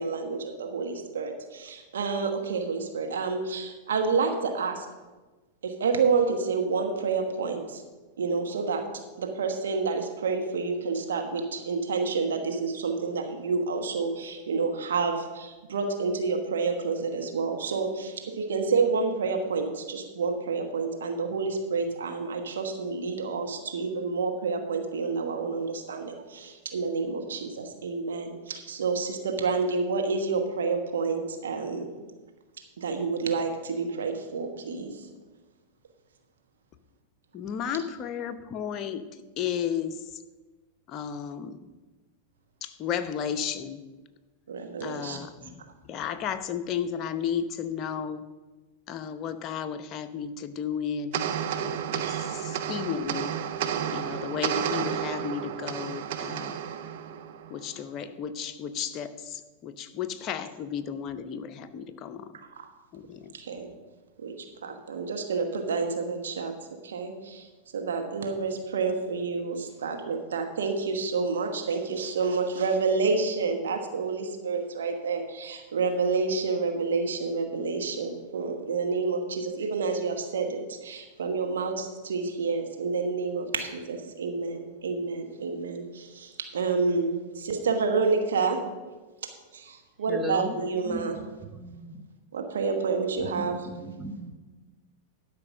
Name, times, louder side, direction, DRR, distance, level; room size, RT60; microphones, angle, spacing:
voice 1, 0.0-4.9 5.6-7.8 8.2-8.8 9.2-31.9 32.8-35.0 44.5-45.2 52.0-52.2 62.6-62.7 63.3-63.7 64.2-64.3 64.6-66.5 66.8-67.5 67.7-88.6 89.5-91.2 92.3-93.6, right 4 dB, 75° right, 4 dB, 1.2 m, -29 dB
voice 2, 37.3-39.0 39.4-40.0 40.9-41.6 42.6-43.8 44.8-45.6 45.9-48.2 48.9-51.2 51.6-53.3 53.9-56.6 57.5-62.3 62.9-63.3, left 8 dB, 40° left, 8 dB, 0.8 m, -33 dB
sound 1, 51.1-57.8, right 9 dB, 60° right, 0.6 m, -31 dB
voice 3, 90.1-90.5 90.8-92.0 93.2-94.3, equal, 5° right, 4 dB, 1.3 m, -37 dB
12.0 x 5.2 x 6.3 m, 1.2 s
hypercardioid pair, 95°, 0 cm